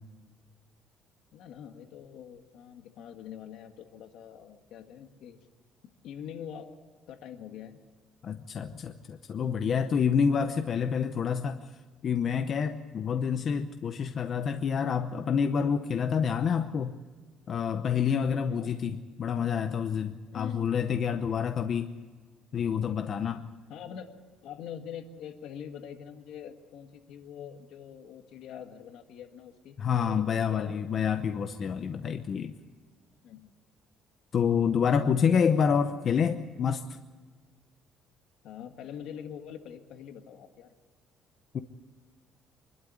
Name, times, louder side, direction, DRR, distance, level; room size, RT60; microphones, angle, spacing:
voice 1, 1.3-5.4 6.0-6.7 7.1-7.8 18.5-18.7 20.3-20.8 23.7-30.9 33.2-33.5 38.4-40.7, left 8 dB, 65° left, 6 dB, 1.7 m, -44 dB
voice 2, 8.2-11.6 12.0-17.0 17.5-21.9 22.5-23.5 29.8-32.6 34.3-36.8 41.5-41.6, left 7 dB, 35° left, 7 dB, 0.8 m, -28 dB
25.0 x 12.5 x 10.0 m, 1.4 s
cardioid pair, 165°, 0 cm